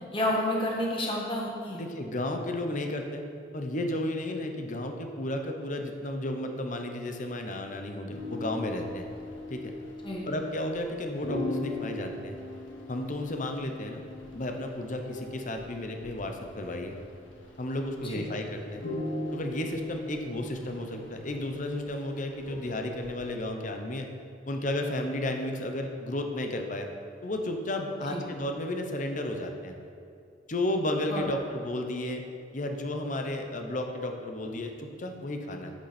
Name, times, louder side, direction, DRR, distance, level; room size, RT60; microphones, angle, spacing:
voice 1, 0.0-1.8 10.0-10.2 18.0-18.2 28.1-28.2 31.1-31.2, left 1 dB, 25° left, -3 dB, 1.6 m, -30 dB
voice 2, 1.8-3.2 3.5-9.1 9.5-9.7 10.3-12.4 12.9-14.0 14.3-16.9 17.6-18.8 19.3-24.1 24.5-26.9 27.2-29.8 30.5-32.2 32.5-35.7, left 1 dB, 45° left, 4 dB, 0.9 m, -33 dB
sound 1, 8.1-23.4, left 2 dB, 90° left, 1.4 m, -40 dB
8.4 x 8.3 x 4.3 m, 2.5 s
head